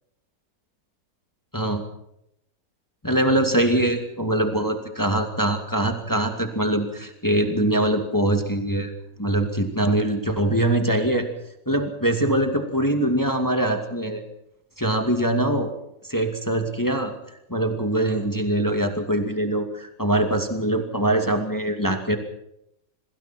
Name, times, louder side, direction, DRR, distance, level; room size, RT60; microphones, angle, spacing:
voice 1, 3.0-8.9 9.2-11.3 11.7-14.2 14.8-15.7 16.0-17.1 17.5-22.2, right 1 dB, 10° left, 5 dB, 2.4 m, -23 dB
28.0 x 20.5 x 4.6 m, 0.79 s
omnidirectional pair, 1.9 m